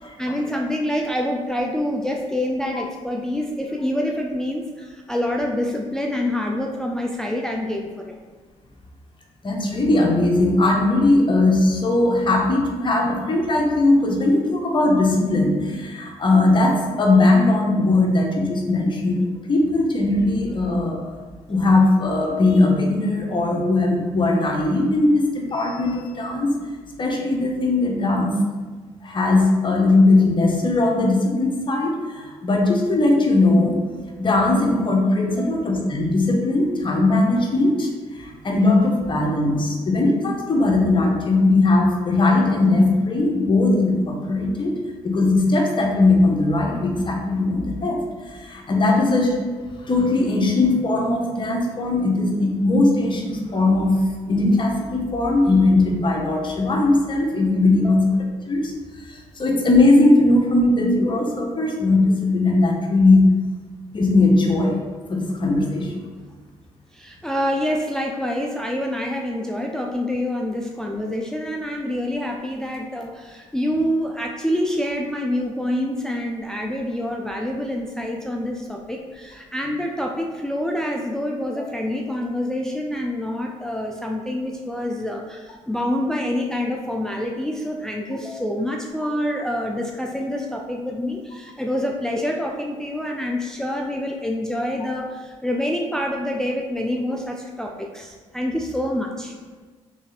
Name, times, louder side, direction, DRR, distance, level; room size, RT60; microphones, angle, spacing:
voice 1, 0.2-8.1 35.3-35.6 57.7-58.1 66.9-99.4, left 1 dB, 5° left, 0 dB, 0.4 m, -26 dB
voice 2, 9.4-19.2 19.5-21.0 21.5-26.5 27.0-28.4 29.0-33.8 34.2-44.8 45.0-49.4 49.8-54.0 54.3-58.1 58.5-58.7 59.0-63.3 63.9-64.8 65.1-66.1, left 2 dB, 40° left, 0 dB, 0.8 m, -19 dB
3.3 x 2.6 x 4.0 m, 1.4 s
supercardioid pair, 70°, 13 cm